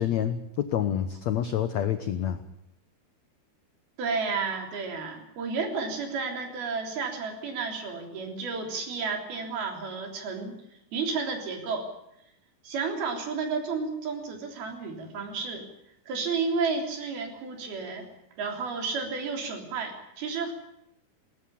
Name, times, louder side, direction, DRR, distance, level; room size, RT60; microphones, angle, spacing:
voice 1, 0.0-2.4, left 10 dB, 80° left, 10 dB, 1.6 m, -27 dB
voice 2, 4.0-10.6 10.9-11.9 12.6-15.7 16.1-18.1 18.4-20.5, right 4 dB, 70° right, 3 dB, 5.3 m, -32 dB
20.5 x 19.0 x 8.5 m, 0.82 s
omnidirectional pair, 4.6 m